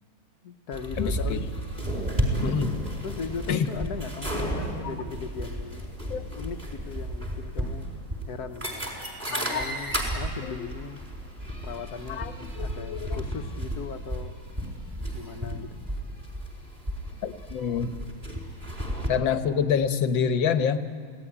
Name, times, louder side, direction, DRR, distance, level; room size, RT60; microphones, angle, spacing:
voice 1, 0.4-1.5 2.3-2.6 3.0-6.0 6.3-7.9 8.3-8.7 9.3-11.0 11.6-12.2 12.6-14.4 15.1-15.8, left 5 dB, 60° left, 8 dB, 1.4 m, -38 dB
sound 1, 0.7-19.1, right 1 dB, 20° right, 4.5 m, -33 dB
voice 2, 1.0-1.5 2.4-2.9 3.5-3.7 4.8-4.9 6.1-6.2 9.3-9.6 10.4-10.7 12.1-13.2 17.2-17.9 19.1-20.8, left 7 dB, 85° left, 9 dB, 1.9 m, -27 dB
26.5 x 18.0 x 9.9 m, 2.3 s
omnidirectional pair, 2.1 m